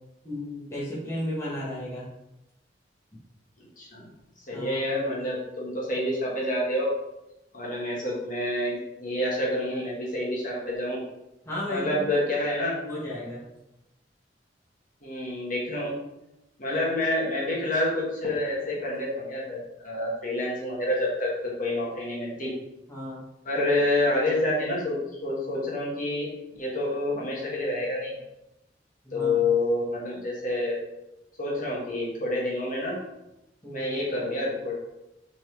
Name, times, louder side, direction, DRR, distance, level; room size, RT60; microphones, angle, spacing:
voice 1, 0.2-2.1 4.5-4.8 11.4-12.1 12.9-13.4 22.9-23.2 29.0-29.5 33.6-33.9, left 1 dB, 15° left, -7 dB, 1.4 m, -34 dB
voice 2, 3.8-4.1 4.5-6.9 7.5-11.0 11.7-12.8 15.0-15.9 16.6-19.6 19.8-22.5 23.5-25.0 25.2-26.3 26.6-28.1 29.1-30.8 31.4-33.0 33.7-34.7, left 1 dB, 50° left, -4 dB, 1.7 m, -28 dB
6.1 x 4.1 x 3.8 m, 0.91 s
head